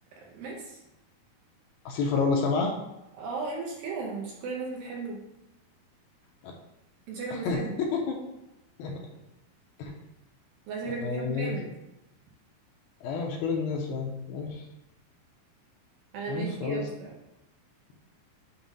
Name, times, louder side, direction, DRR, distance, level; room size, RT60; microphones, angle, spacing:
voice 1, 0.2-0.8 3.2-5.2 7.1-7.8 10.7-11.7 16.1-17.1, right 4 dB, 75° right, -2 dB, 2.2 m, -36 dB
voice 2, 1.9-2.7 6.4-6.5 7.3-8.2 8.8-8.9 9.8-9.9 10.9-11.5 13.0-14.7 16.3-16.8, left 4 dB, 80° left, 1 dB, 2.3 m, -29 dB
7.5 x 2.6 x 5.2 m, 0.93 s
omnidirectional pair, 4.8 m